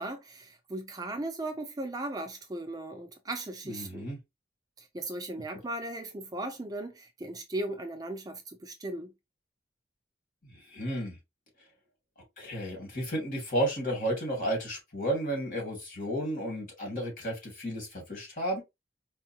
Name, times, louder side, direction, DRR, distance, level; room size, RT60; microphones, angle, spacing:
voice 1, 0.0-4.1 4.8-9.1, right 2 dB, 20° right, 0.4 m, -37 dB
voice 2, 3.7-4.2 10.7-11.2 12.4-18.6, right 1 dB, 50° left, 2.0 m, -32 dB
4.4 x 2.5 x 2.8 m
head